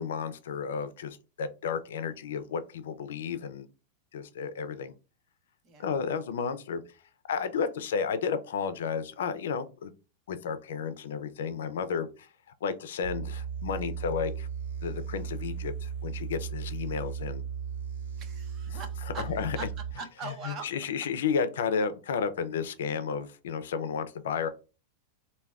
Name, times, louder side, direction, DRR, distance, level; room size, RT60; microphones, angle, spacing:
voice 1, 0.0-3.7 4.1-4.9 5.8-6.8 7.3-9.9 10.3-12.3 12.6-14.5 14.8-17.4 19.2-19.6 20.3-24.5, left 6 dB, 85° left, 12 dB, 0.4 m, -32 dB
sound 1, 13.0-19.9, right 7 dB, 90° right, 1.0 m, -36 dB
voice 2, 18.2-19.7 20.0-20.7, right 4 dB, 30° right, 6 dB, 0.6 m, -41 dB
3.4 x 2.2 x 2.3 m, 0.31 s
supercardioid pair, 160°, 0 cm